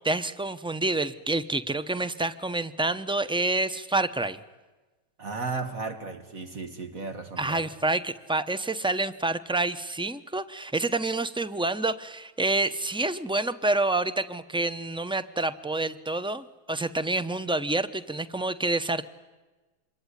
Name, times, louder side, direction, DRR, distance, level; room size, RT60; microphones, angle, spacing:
voice 1, 0.0-4.4 7.4-19.1, right 2 dB, 5° right, 13 dB, 0.6 m, -28 dB
voice 2, 5.2-7.6, right 4 dB, 60° right, 7 dB, 2.2 m, -35 dB
26.5 x 22.5 x 9.9 m, 1.2 s
omnidirectional pair, 1.7 m